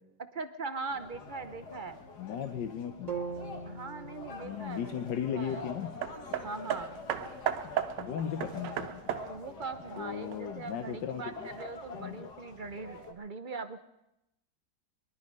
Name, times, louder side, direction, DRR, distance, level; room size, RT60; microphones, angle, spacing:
voice 1, 0.3-2.0 3.6-5.0 5.3-5.7 6.4-7.0 9.3-13.8, right 4 dB, 55° right, 10 dB, 0.5 m, -41 dB
sound 1, 0.9-13.1, left 4 dB, 70° left, 2.1 m, -46 dB
voice 2, 2.2-3.1 4.4-6.0 8.0-9.0 10.0-11.5 12.0-12.2, left 8 dB, 85° left, 7 dB, 1.5 m, -36 dB
sound 2, 3.1-7.1, right 5 dB, 25° right, 1.2 m, -43 dB
Hammer, 6.0-10.7 11.6-11.7, right 10 dB, 85° right, 1.4 m, -36 dB
22.5 x 11.5 x 5.4 m, 0.88 s
omnidirectional pair, 1.8 m